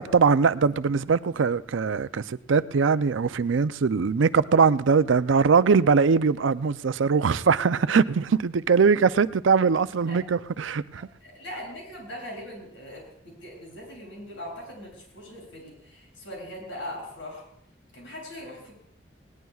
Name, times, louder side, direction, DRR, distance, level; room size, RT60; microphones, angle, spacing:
voice 1, 0.0-11.1, right 5 dB, 85° right, 0.5 m, -21 dB
voice 2, 11.2-17.4 17.9-18.7, left 1 dB, 80° left, 7.4 m, -40 dB
20.5 x 19.0 x 2.4 m
head